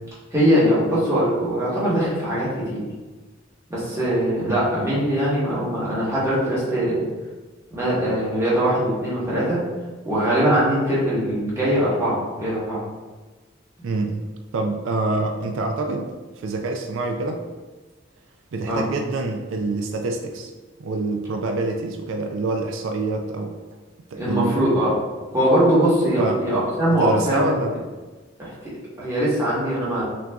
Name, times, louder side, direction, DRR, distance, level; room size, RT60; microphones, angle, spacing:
voice 1, 0.3-2.8 3.7-7.0 7.7-9.6 10.0-12.8 18.7-18.8 24.1-24.9 25.3-27.5 28.4-30.0, equal, 15° right, -9 dB, 1.3 m, -21 dB
voice 2, 13.8-14.2 14.5-17.4 18.5-20.5 20.8-23.6 24.1-24.7 26.2-26.4 27.0-27.8, right 3 dB, 90° right, 4 dB, 0.4 m, -26 dB
6.0 x 2.6 x 2.3 m, 1.3 s
head